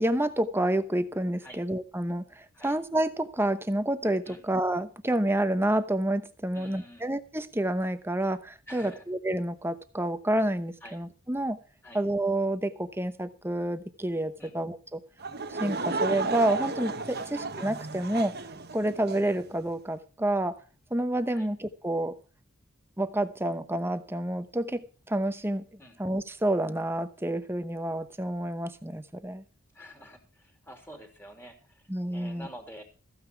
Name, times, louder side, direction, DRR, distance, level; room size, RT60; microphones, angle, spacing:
voice 1, 0.0-11.6 11.9-15.0 15.5-18.3 18.7-20.6 20.9-22.1 23.0-25.6 26.0-29.4 31.9-32.5, right 1 dB, 10° right, 0.8 m, -29 dB
voice 2, 6.5-7.1 8.7-9.0 10.8-11.0 11.8-12.0 14.4-14.5 17.2-17.3 21.3-21.5 25.8-26.0 29.7-32.8, equal, 10° left, 2.9 m, -48 dB
Laughter / Crowd, 15.2-19.4, right 3 dB, 45° right, 1.1 m, -33 dB
15.0 x 9.2 x 4.7 m
head